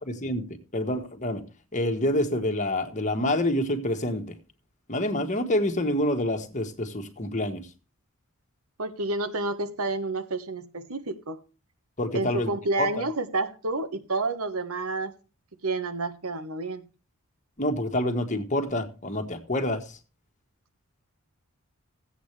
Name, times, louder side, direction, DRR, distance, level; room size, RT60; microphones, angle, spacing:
voice 1, 0.0-0.4 0.7-1.4 1.7-4.3 4.9-7.7 12.0-12.5 12.8-13.0 17.6-20.0, left 1 dB, 35° left, 1.5 m, -27 dB
voice 2, 8.8-11.4 12.1-15.1 15.6-16.8, right 2 dB, 85° right, 1.3 m, -29 dB
16.5 x 8.0 x 3.3 m
head